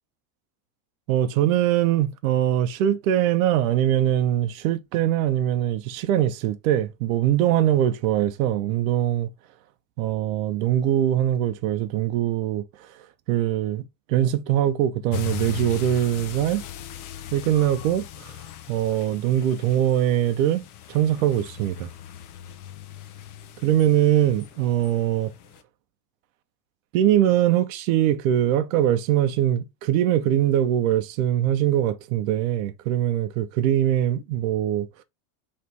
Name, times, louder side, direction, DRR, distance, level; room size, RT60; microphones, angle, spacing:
voice 1, 1.1-9.3 10.0-12.7 13.3-16.6 17.3-18.3 18.7-21.9 23.6-25.3 26.9-34.9, right 11 dB, 55° right, 0.7 m, -22 dB
sound 1, 15.1-25.6, left 10 dB, 65° left, 0.8 m, -39 dB
4.3 x 3.1 x 3.3 m
supercardioid pair, 175°, 49 cm